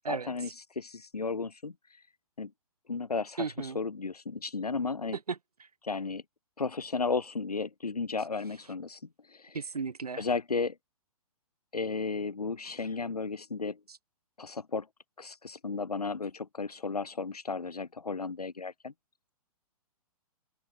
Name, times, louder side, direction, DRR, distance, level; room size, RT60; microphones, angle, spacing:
voice 1, 0.1-2.1 2.4-2.5 2.9-5.2 5.8-6.2 6.6-9.6 10.2-10.8 11.7-13.8 14.4-14.9 15.2-18.9, left 4 dB, 90° left, 0.5 m, -34 dB
voice 2, 3.4-3.8 5.3-5.7 9.5-10.2, right 5 dB, 80° right, 0.5 m, -35 dB
figure-of-eight pair, 120°, 19 cm